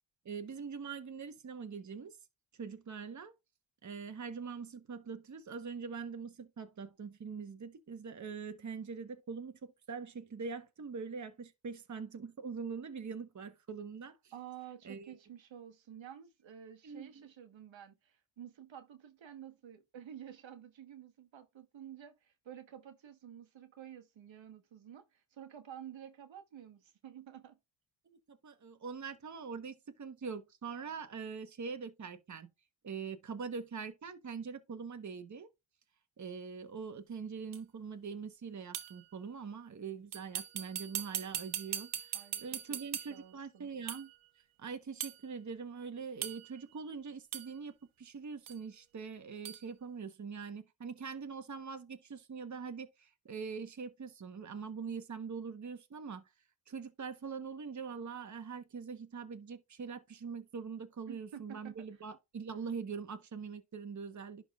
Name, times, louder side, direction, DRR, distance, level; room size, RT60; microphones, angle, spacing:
voice 1, 0.2-2.2 2.6-3.3 3.8-14.3 14.8-15.1 16.8-17.2 28.3-32.5 32.8-35.5 36.2-44.1 44.6-56.3 56.7-64.4, right 5 dB, 35° right, 1.2 m, -43 dB
voice 2, 14.3-27.6 42.1-43.7 61.1-61.8, right 10 dB, 70° right, 1.4 m, -51 dB
sound 1, 37.5-37.6 38.7-39.1 40.1-43.3 43.9-44.2 45.0-45.2 46.2-46.6 47.3-47.6 48.5-48.6 49.4-49.6, right 11 dB, 85° right, 1.0 m, -40 dB
11.5 x 3.8 x 2.5 m
cardioid pair, 85°, 48 cm